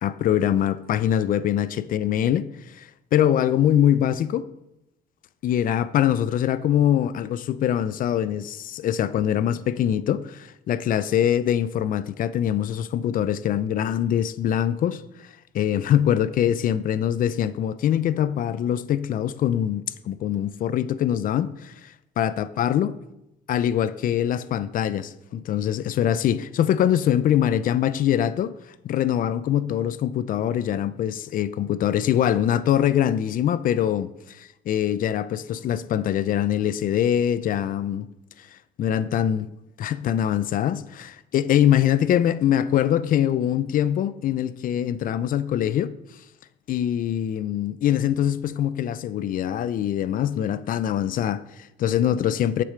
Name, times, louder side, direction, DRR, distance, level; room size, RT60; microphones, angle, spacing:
voice 1, 0.0-4.5 5.4-15.0 15.5-22.9 23.5-28.6 28.8-38.1 38.4-39.5 39.8-45.9 46.7-52.6, left 10 dB, 55° left, 0.5 m, -23 dB
9.6 x 6.8 x 5.0 m
cardioid pair, 110°, 17 cm